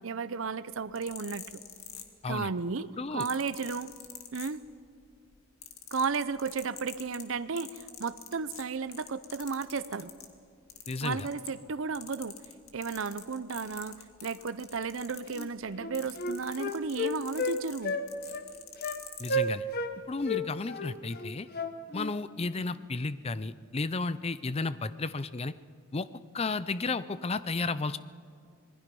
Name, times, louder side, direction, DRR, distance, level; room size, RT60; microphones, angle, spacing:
voice 1, 0.0-1.6 2.3-3.9 4.3-4.6 5.9-10.1 11.0-12.4 12.7-18.0, right 5 dB, 70° right, 14 dB, 0.6 m, -34 dB
sound 1, 0.8-2.5 3.2-4.9 5.3-10.3 10.7-11.7 11.9-19.4 20.1-20.3, left 9 dB, 85° left, 2.0 m, -46 dB
voice 2, 3.0-3.3 10.9-11.3 19.2-19.6 20.1-21.5 21.9-25.5 25.9-26.1 26.3-28.0, left 3 dB, 30° left, 15 dB, 0.5 m, -33 dB
Wind instrument woodwind instrument, 15.3-15.5 15.8-17.6 17.8-18.0 18.3-18.5 18.8-19.0 19.3-19.9 20.2-22.1, left 1 dB, 45° left, 1.2 m, -32 dB
26.5 x 20.0 x 5.4 m, 2.3 s
head